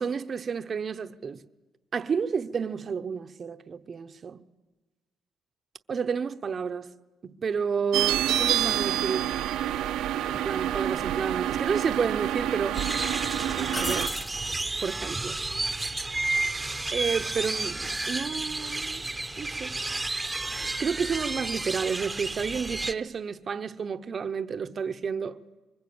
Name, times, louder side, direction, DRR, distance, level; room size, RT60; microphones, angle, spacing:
voice 1, 0.0-1.5 1.9-4.4 5.9-7.0 7.2-9.4 10.2-12.9 13.5-14.2 14.8-15.4 16.9-19.0 19.4-19.8 20.5-25.4, right 6 dB, 40° right, 0.9 m, -31 dB
sound 1, 7.9-14.1, right 12 dB, 85° right, 1.0 m, -28 dB
sound 2, 10.3-10.5 11.6-12.3 12.7-12.8 13.7-14.4 17.5-17.9, left 2 dB, 25° left, 1.0 m, -37 dB
sound 3, 12.7-22.9, right 2 dB, 15° right, 1.0 m, -31 dB
26.0 x 23.5 x 8.7 m
cardioid pair, 105°, 0 cm